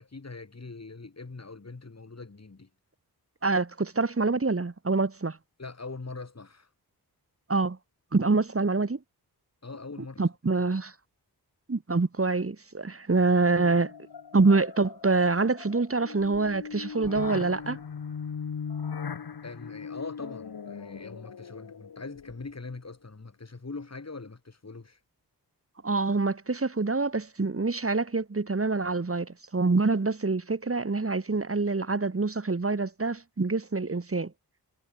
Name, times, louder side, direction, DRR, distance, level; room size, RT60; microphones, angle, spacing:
voice 1, 0.0-2.7 5.6-6.7 9.6-10.2 19.4-25.0, left 3 dB, 40° left, 6.1 m, -42 dB
voice 2, 3.4-5.4 7.5-7.8 8.1-9.0 10.2-10.9 11.7-13.9 14.3-17.8 25.8-34.3, right 3 dB, 35° right, 2.8 m, -26 dB
sound 1, 13.6-22.7, left 6 dB, 65° left, 2.0 m, -39 dB
wide cardioid pair, 70°, 39 cm